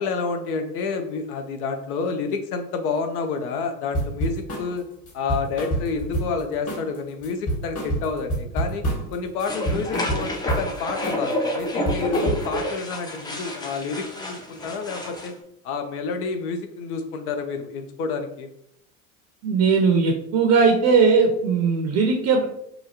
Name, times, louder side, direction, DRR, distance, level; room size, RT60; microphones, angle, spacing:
voice 1, 0.0-4.8 5.1-8.8 9.1-15.3 15.6-18.5, left 5 dB, 75° left, 6 dB, 0.6 m, -29 dB
sound 1, 3.9-4.7 5.1-6.4 6.7-7.0 7.2-9.1 9.4-10.7 11.0-11.3 11.6-12.6, right 1 dB, 40° left, 1.4 m, -27 dB
sound 2, 9.4-15.3, left 1 dB, 10° left, 0.4 m, -29 dB
voice 2, 19.4-22.4, right 5 dB, 40° right, 2 dB, 0.5 m, -19 dB
3.0 x 2.4 x 2.7 m, 0.73 s
hypercardioid pair, 80°, 45 cm